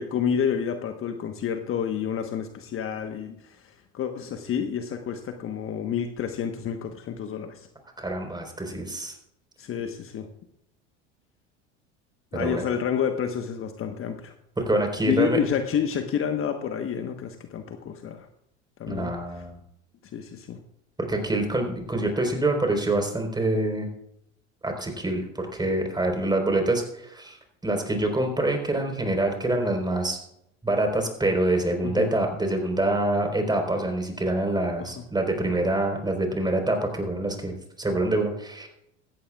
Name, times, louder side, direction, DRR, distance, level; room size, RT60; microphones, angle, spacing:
voice 1, 0.0-7.7 9.6-10.3 12.3-14.3 15.1-18.3 18.8-19.1 20.1-20.6 31.8-32.1 34.8-35.0, left 8 dB, 40° left, 7 dB, 1.2 m, -29 dB
voice 2, 8.0-9.1 12.3-12.6 14.7-15.4 18.9-19.6 21.1-23.9 24.6-27.4 27.6-30.2 30.6-38.7, right 2 dB, 10° right, 3 dB, 4.3 m, -26 dB
16.5 x 14.0 x 2.4 m, 0.76 s
hypercardioid pair, 75°, 36 cm